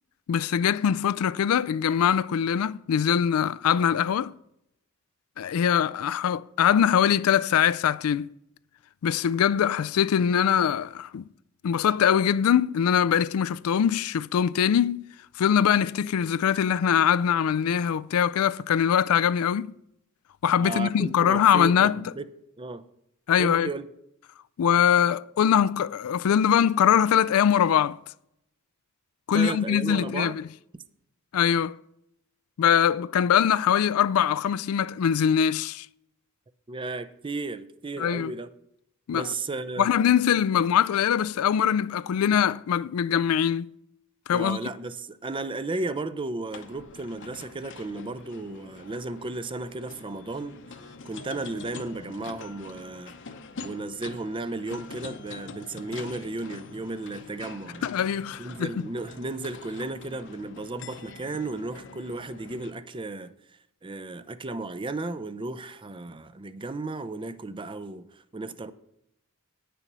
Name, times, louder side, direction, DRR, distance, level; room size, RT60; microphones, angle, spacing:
voice 1, 0.3-4.3 5.4-8.3 9.0-11.3 11.6-15.1 15.4-19.7 20.4-22.0 23.3-23.7 24.6-28.0 29.3-30.4 31.3-31.8 32.6-35.9 38.0-38.3 39.1-39.3 39.8-43.7 44.3-44.6 57.8-58.8, left 8 dB, 80° left, 0.3 m, -22 dB
voice 2, 20.6-22.2 22.6-22.8 23.4-23.9 29.3-30.4 36.7-38.5 39.1-39.9 44.3-50.6 51.0-53.1 53.6-57.9 58.4-63.3 63.8-68.7, right 2 dB, 25° right, 0.5 m, -34 dB
sound 1, 46.5-62.7, left 4 dB, 60° left, 0.8 m, -44 dB
9.0 x 6.8 x 6.0 m
head